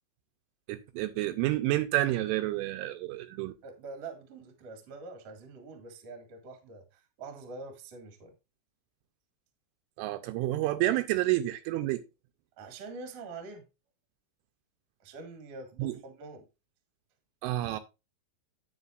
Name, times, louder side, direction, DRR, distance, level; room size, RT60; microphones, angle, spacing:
voice 1, 0.7-3.5 10.0-12.0 15.8-15.9 17.4-17.8, right 15 dB, 80° right, 3.0 m, -29 dB
voice 2, 3.6-8.3 12.6-13.6 15.0-16.4, right 3 dB, 55° right, 1.9 m, -45 dB
9.7 x 8.8 x 2.4 m
omnidirectional pair, 5.8 m